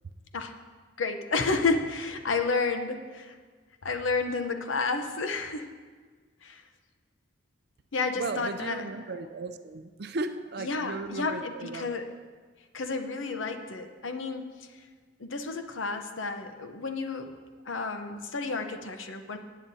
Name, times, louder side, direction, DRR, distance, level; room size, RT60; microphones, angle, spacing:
voice 1, 1.0-3.4 3.8-5.7 6.4-6.6 7.9-8.8 10.6-12.1 12.7-14.7 15.2-17.3 17.7-19.4, left 4 dB, 85° left, 6 dB, 0.8 m, -31 dB
voice 2, 8.1-11.9, right 3 dB, 55° right, 8 dB, 0.5 m, -36 dB
18.0 x 9.2 x 2.8 m, 1.5 s
head